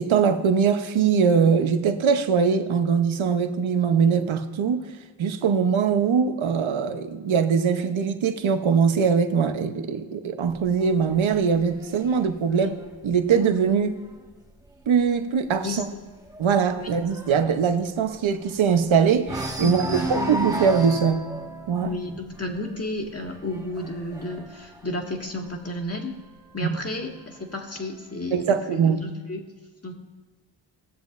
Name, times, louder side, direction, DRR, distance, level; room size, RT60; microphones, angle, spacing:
voice 1, 0.0-4.9 5.2-12.7 13.0-14.0 14.9-15.8 16.4-21.2 21.7-21.9 26.6-26.7 28.3-29.0, right 6 dB, 70° right, 8 dB, 1.0 m, -22 dB
sound 1, 10.5-14.1 14.5-14.8 15.1-15.2 15.6-18.8 19.2-25.8 26.6-27.6, right 2 dB, 10° right, 1.7 m, -35 dB
voice 2, 15.6-16.1 16.8-16.9 19.6-20.3 21.8-26.2 26.5-29.4 29.8-29.9, left 2 dB, 30° left, 1 dB, 2.0 m, -32 dB
18.5 x 7.2 x 2.6 m, 1.4 s
cardioid pair, 50°, 50 cm